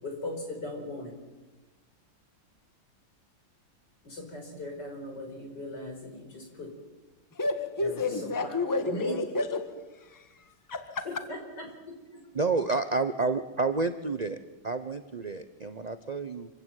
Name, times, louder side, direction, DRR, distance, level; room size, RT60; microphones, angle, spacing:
voice 1, 0.0-1.1 4.0-6.7 7.8-8.5 8.9-9.2 11.1-11.7 12.1-12.2, left 2 dB, 60° left, 3 dB, 5.6 m, -38 dB
voice 2, 7.3-11.1, left 3 dB, 10° left, 7 dB, 1.6 m, -31 dB
voice 3, 12.3-14.4 14.6-16.5, right 3 dB, 45° right, 10 dB, 0.5 m, -29 dB
25.5 x 16.0 x 9.2 m, 1.2 s
omnidirectional pair, 2.1 m